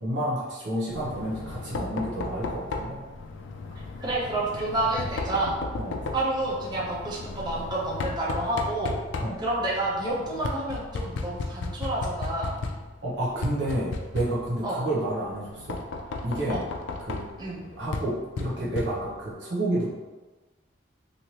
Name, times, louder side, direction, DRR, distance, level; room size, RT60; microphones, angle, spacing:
voice 1, 0.0-3.0 5.8-6.0 9.2-9.4 13.0-15.8 16.2-16.6 17.0-17.2 17.8-19.9, right 1 dB, 70° right, -6 dB, 0.8 m, -30 dB
Knock, 0.9-19.3, left 3 dB, 80° left, 0.4 m, -35 dB
voice 2, 4.0-5.6 6.1-8.9 9.4-12.5 14.6-14.9 16.5-16.6 17.4-17.7, right 2 dB, 25° right, -5 dB, 0.6 m, -29 dB
3.1 x 2.7 x 2.8 m, 1.2 s
head